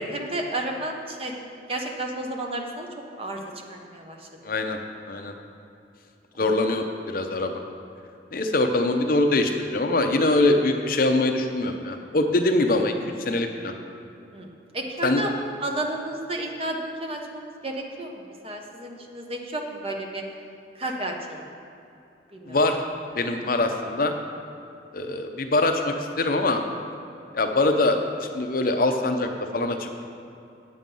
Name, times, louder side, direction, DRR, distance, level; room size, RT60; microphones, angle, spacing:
voice 1, 0.0-1.4 1.7-2.9 3.2-4.3 6.4-6.5 14.3-14.5 14.7-15.3 15.6-20.2 20.8-21.4 22.3-22.6, right 1 dB, 30° right, 2 dB, 0.9 m, -32 dB
voice 2, 4.4-4.8 5.1-5.3 6.4-7.6 8.3-13.7 15.0-15.2 22.5-22.8 23.2-24.1 24.9-26.6 27.3-29.9, left 2 dB, 50° left, 5 dB, 0.7 m, -23 dB
9.3 x 7.5 x 5.4 m, 2.7 s
head